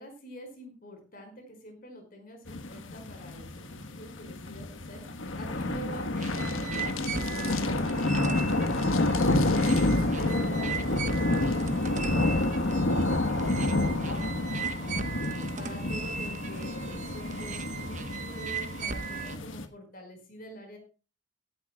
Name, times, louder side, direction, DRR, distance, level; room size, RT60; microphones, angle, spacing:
voice 1, 0.0-8.8 9.3-15.1 15.6-20.8, equal, 45° left, 4 dB, 5.0 m, -46 dB
sound 1, 2.5-19.7, left 2 dB, 75° left, 1.4 m, -29 dB
sound 2, 6.1-19.4, right 5 dB, 35° right, 1.1 m, -38 dB
sound 3, 6.2-11.7, left 8 dB, 90° left, 1.3 m, -44 dB
17.0 x 11.0 x 2.3 m, 0.33 s
head